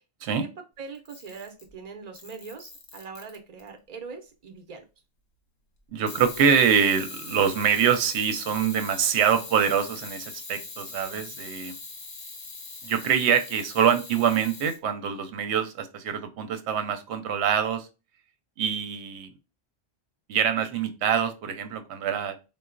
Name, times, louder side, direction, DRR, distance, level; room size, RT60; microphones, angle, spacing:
voice 1, 0.4-4.8 11.1-11.2, right 5 dB, 45° right, 6 dB, 0.7 m, -42 dB
Camera, 0.9-1.7 2.1-3.7 6.1-14.8, left 3 dB, 45° left, 0.8 m, -41 dB
voice 2, 5.9-11.8 12.8-17.9 18.6-19.3 20.3-22.4, right 7 dB, 80° right, 9 dB, 0.8 m, -25 dB
3.9 x 2.1 x 2.4 m, 0.30 s
omnidirectional pair, 1.1 m